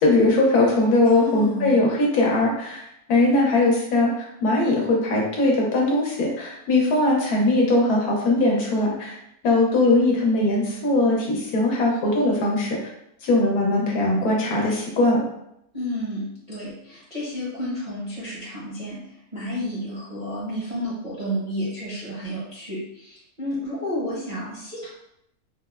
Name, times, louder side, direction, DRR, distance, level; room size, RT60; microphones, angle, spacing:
voice 1, 0.0-9.2 9.4-12.8 13.2-15.2, left 2 dB, 80° left, -2 dB, 1.2 m, -20 dB
voice 2, 1.0-1.7 15.7-24.9, equal, 40° right, -9 dB, 0.6 m, -31 dB
3.4 x 2.0 x 2.3 m, 0.76 s
omnidirectional pair, 1.6 m